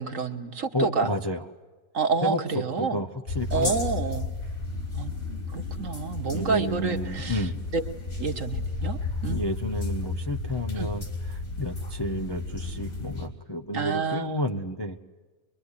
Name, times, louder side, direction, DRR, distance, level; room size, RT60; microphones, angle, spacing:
voice 1, 0.0-1.1 1.9-3.0 3.5-4.3 4.9-5.1 5.5-7.8 8.2-9.4 10.8-10.9 13.7-14.5, right 5 dB, 50° right, 7 dB, 1.6 m, -29 dB
voice 2, 0.7-1.4 2.2-3.1 3.3-3.8 6.3-7.6 9.3-11.0 11.3-15.0, left 1 dB, 20° left, 4 dB, 0.7 m, -31 dB
sound 1, 3.3-13.3, left 3 dB, 40° left, 3.8 m, -33 dB
24.0 x 23.0 x 9.8 m, 1.3 s
omnidirectional pair, 1.8 m